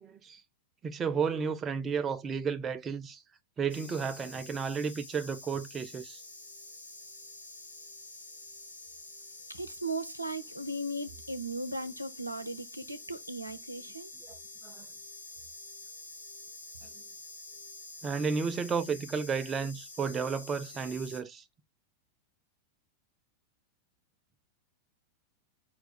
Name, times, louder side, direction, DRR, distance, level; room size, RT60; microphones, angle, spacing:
voice 1, 0.0-0.4 0.8-3.2 3.6-6.2 14.3-14.4 14.6-14.9 18.0-21.4, right 5 dB, 20° right, 0.4 m, -32 dB
sound 1, 3.7-21.2, left 2 dB, 75° left, 2.1 m, -48 dB
voice 2, 9.5-14.1, right 1 dB, 90° right, 0.6 m, -37 dB
5.1 x 2.2 x 4.1 m
figure-of-eight pair, 90°, 0 cm